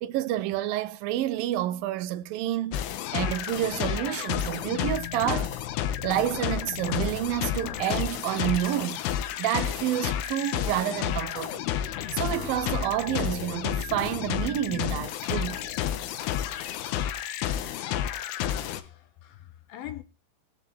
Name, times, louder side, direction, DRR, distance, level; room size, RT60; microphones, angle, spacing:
voice 1, 0.0-2.8 3.1-5.6 6.0-9.0 9.4-11.6 12.1-15.7, right 13 dB, 85° right, 2.0 m, -29 dB
sound 1, 2.7-18.8, left 11 dB, 90° left, 3.7 m, -31 dB
voice 2, 18.4-20.0, left 12 dB, 70° left, 2.4 m, -43 dB
21.5 x 7.5 x 4.1 m
omnidirectional pair, 5.4 m